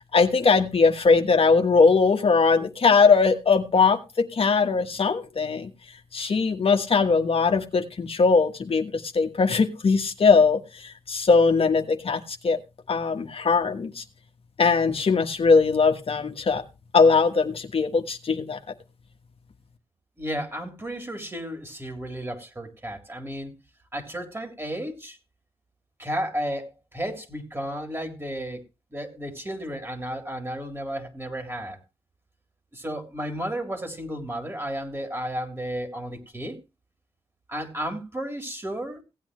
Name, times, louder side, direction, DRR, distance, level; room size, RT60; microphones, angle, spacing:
voice 1, 0.1-5.7 6.1-12.6 12.9-14.0 14.6-16.6 16.9-18.6, left 4 dB, 60° left, 1.3 m, -20 dB
voice 2, 20.2-23.5 23.9-25.2 26.0-28.6 28.9-31.8 32.7-36.6 37.5-39.0, equal, 20° right, 3.5 m, -33 dB
17.0 x 8.8 x 3.2 m
cardioid pair, 60°, 11 cm